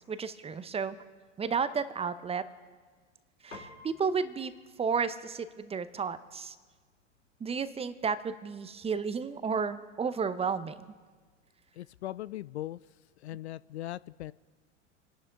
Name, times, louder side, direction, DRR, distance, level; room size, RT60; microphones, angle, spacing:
voice 1, 0.1-1.0 1.4-2.5 3.4-4.5 4.8-6.6 7.4-10.7, right 5 dB, 15° right, 13 dB, 0.8 m, -32 dB
Piano, 3.5-13.1, left 2 dB, 85° left, 2.1 m, -58 dB
voice 2, 11.8-12.8 13.2-14.3, left 14 dB, 65° left, 19 dB, 0.5 m, -39 dB
28.0 x 11.0 x 3.7 m, 1.4 s
figure-of-eight pair, 80°, 37 cm